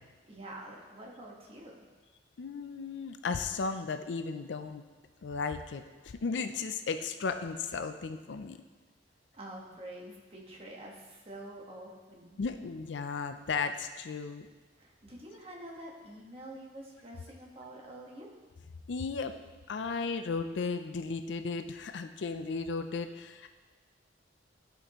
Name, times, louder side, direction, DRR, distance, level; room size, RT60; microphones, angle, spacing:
voice 1, 0.2-1.8 9.3-12.4 14.8-18.3, right 1 dB, 35° right, -2 dB, 1.3 m, -47 dB
voice 2, 2.4-4.8 5.2-8.6 12.4-14.5 18.9-19.3 19.7-23.5, left 4 dB, 70° left, 9 dB, 0.4 m, -35 dB
12.5 x 5.1 x 3.0 m, 1.3 s
head